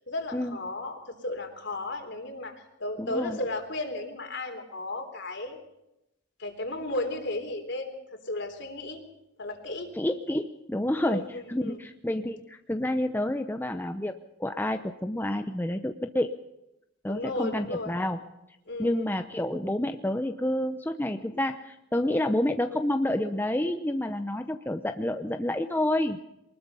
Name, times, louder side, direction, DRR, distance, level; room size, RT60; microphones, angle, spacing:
voice 1, 0.0-5.6 6.4-8.0 8.3-9.0 9.4-9.9 11.0-11.8 17.1-17.9 18.7-19.1, left 2 dB, 60° left, 5 dB, 3.6 m, -34 dB
voice 2, 3.0-3.4 9.9-14.1 14.4-16.3 17.0-18.2 18.8-26.2, left 1 dB, 10° left, 7 dB, 0.7 m, -29 dB
23.5 x 20.5 x 5.5 m, 0.89 s
head